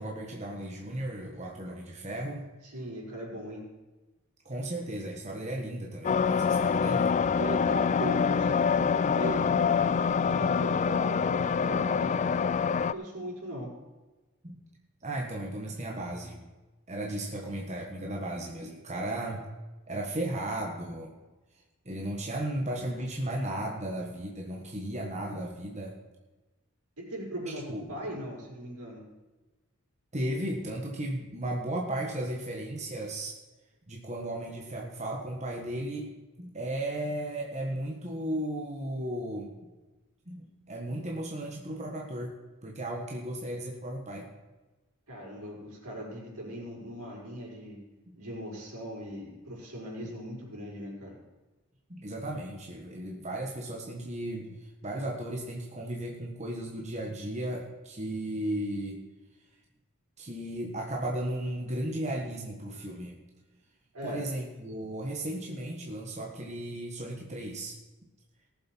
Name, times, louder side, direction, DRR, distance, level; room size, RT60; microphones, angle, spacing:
voice 1, 0.0-2.4 4.4-7.1 14.4-14.6 15.0-16.4 16.9-19.5 19.9-21.1 21.8-25.9 27.5-28.2 30.1-33.4 33.9-36.1 36.4-39.5 40.3-42.3 42.6-44.3 48.1-48.2 51.9-59.0 60.2-63.2 64.0-67.7, right 1 dB, 30° right, 0 dB, 1.5 m, -35 dB
voice 2, 2.6-3.7 7.4-9.7 10.2-13.7 27.0-29.1 45.1-47.8 48.2-51.1 63.9-64.3, equal, 90° right, -4 dB, 5.1 m, -39 dB
sound 1, 6.0-12.9, left 6 dB, 30° left, 0.3 m, -26 dB
18.0 x 7.7 x 4.6 m, 1.2 s
head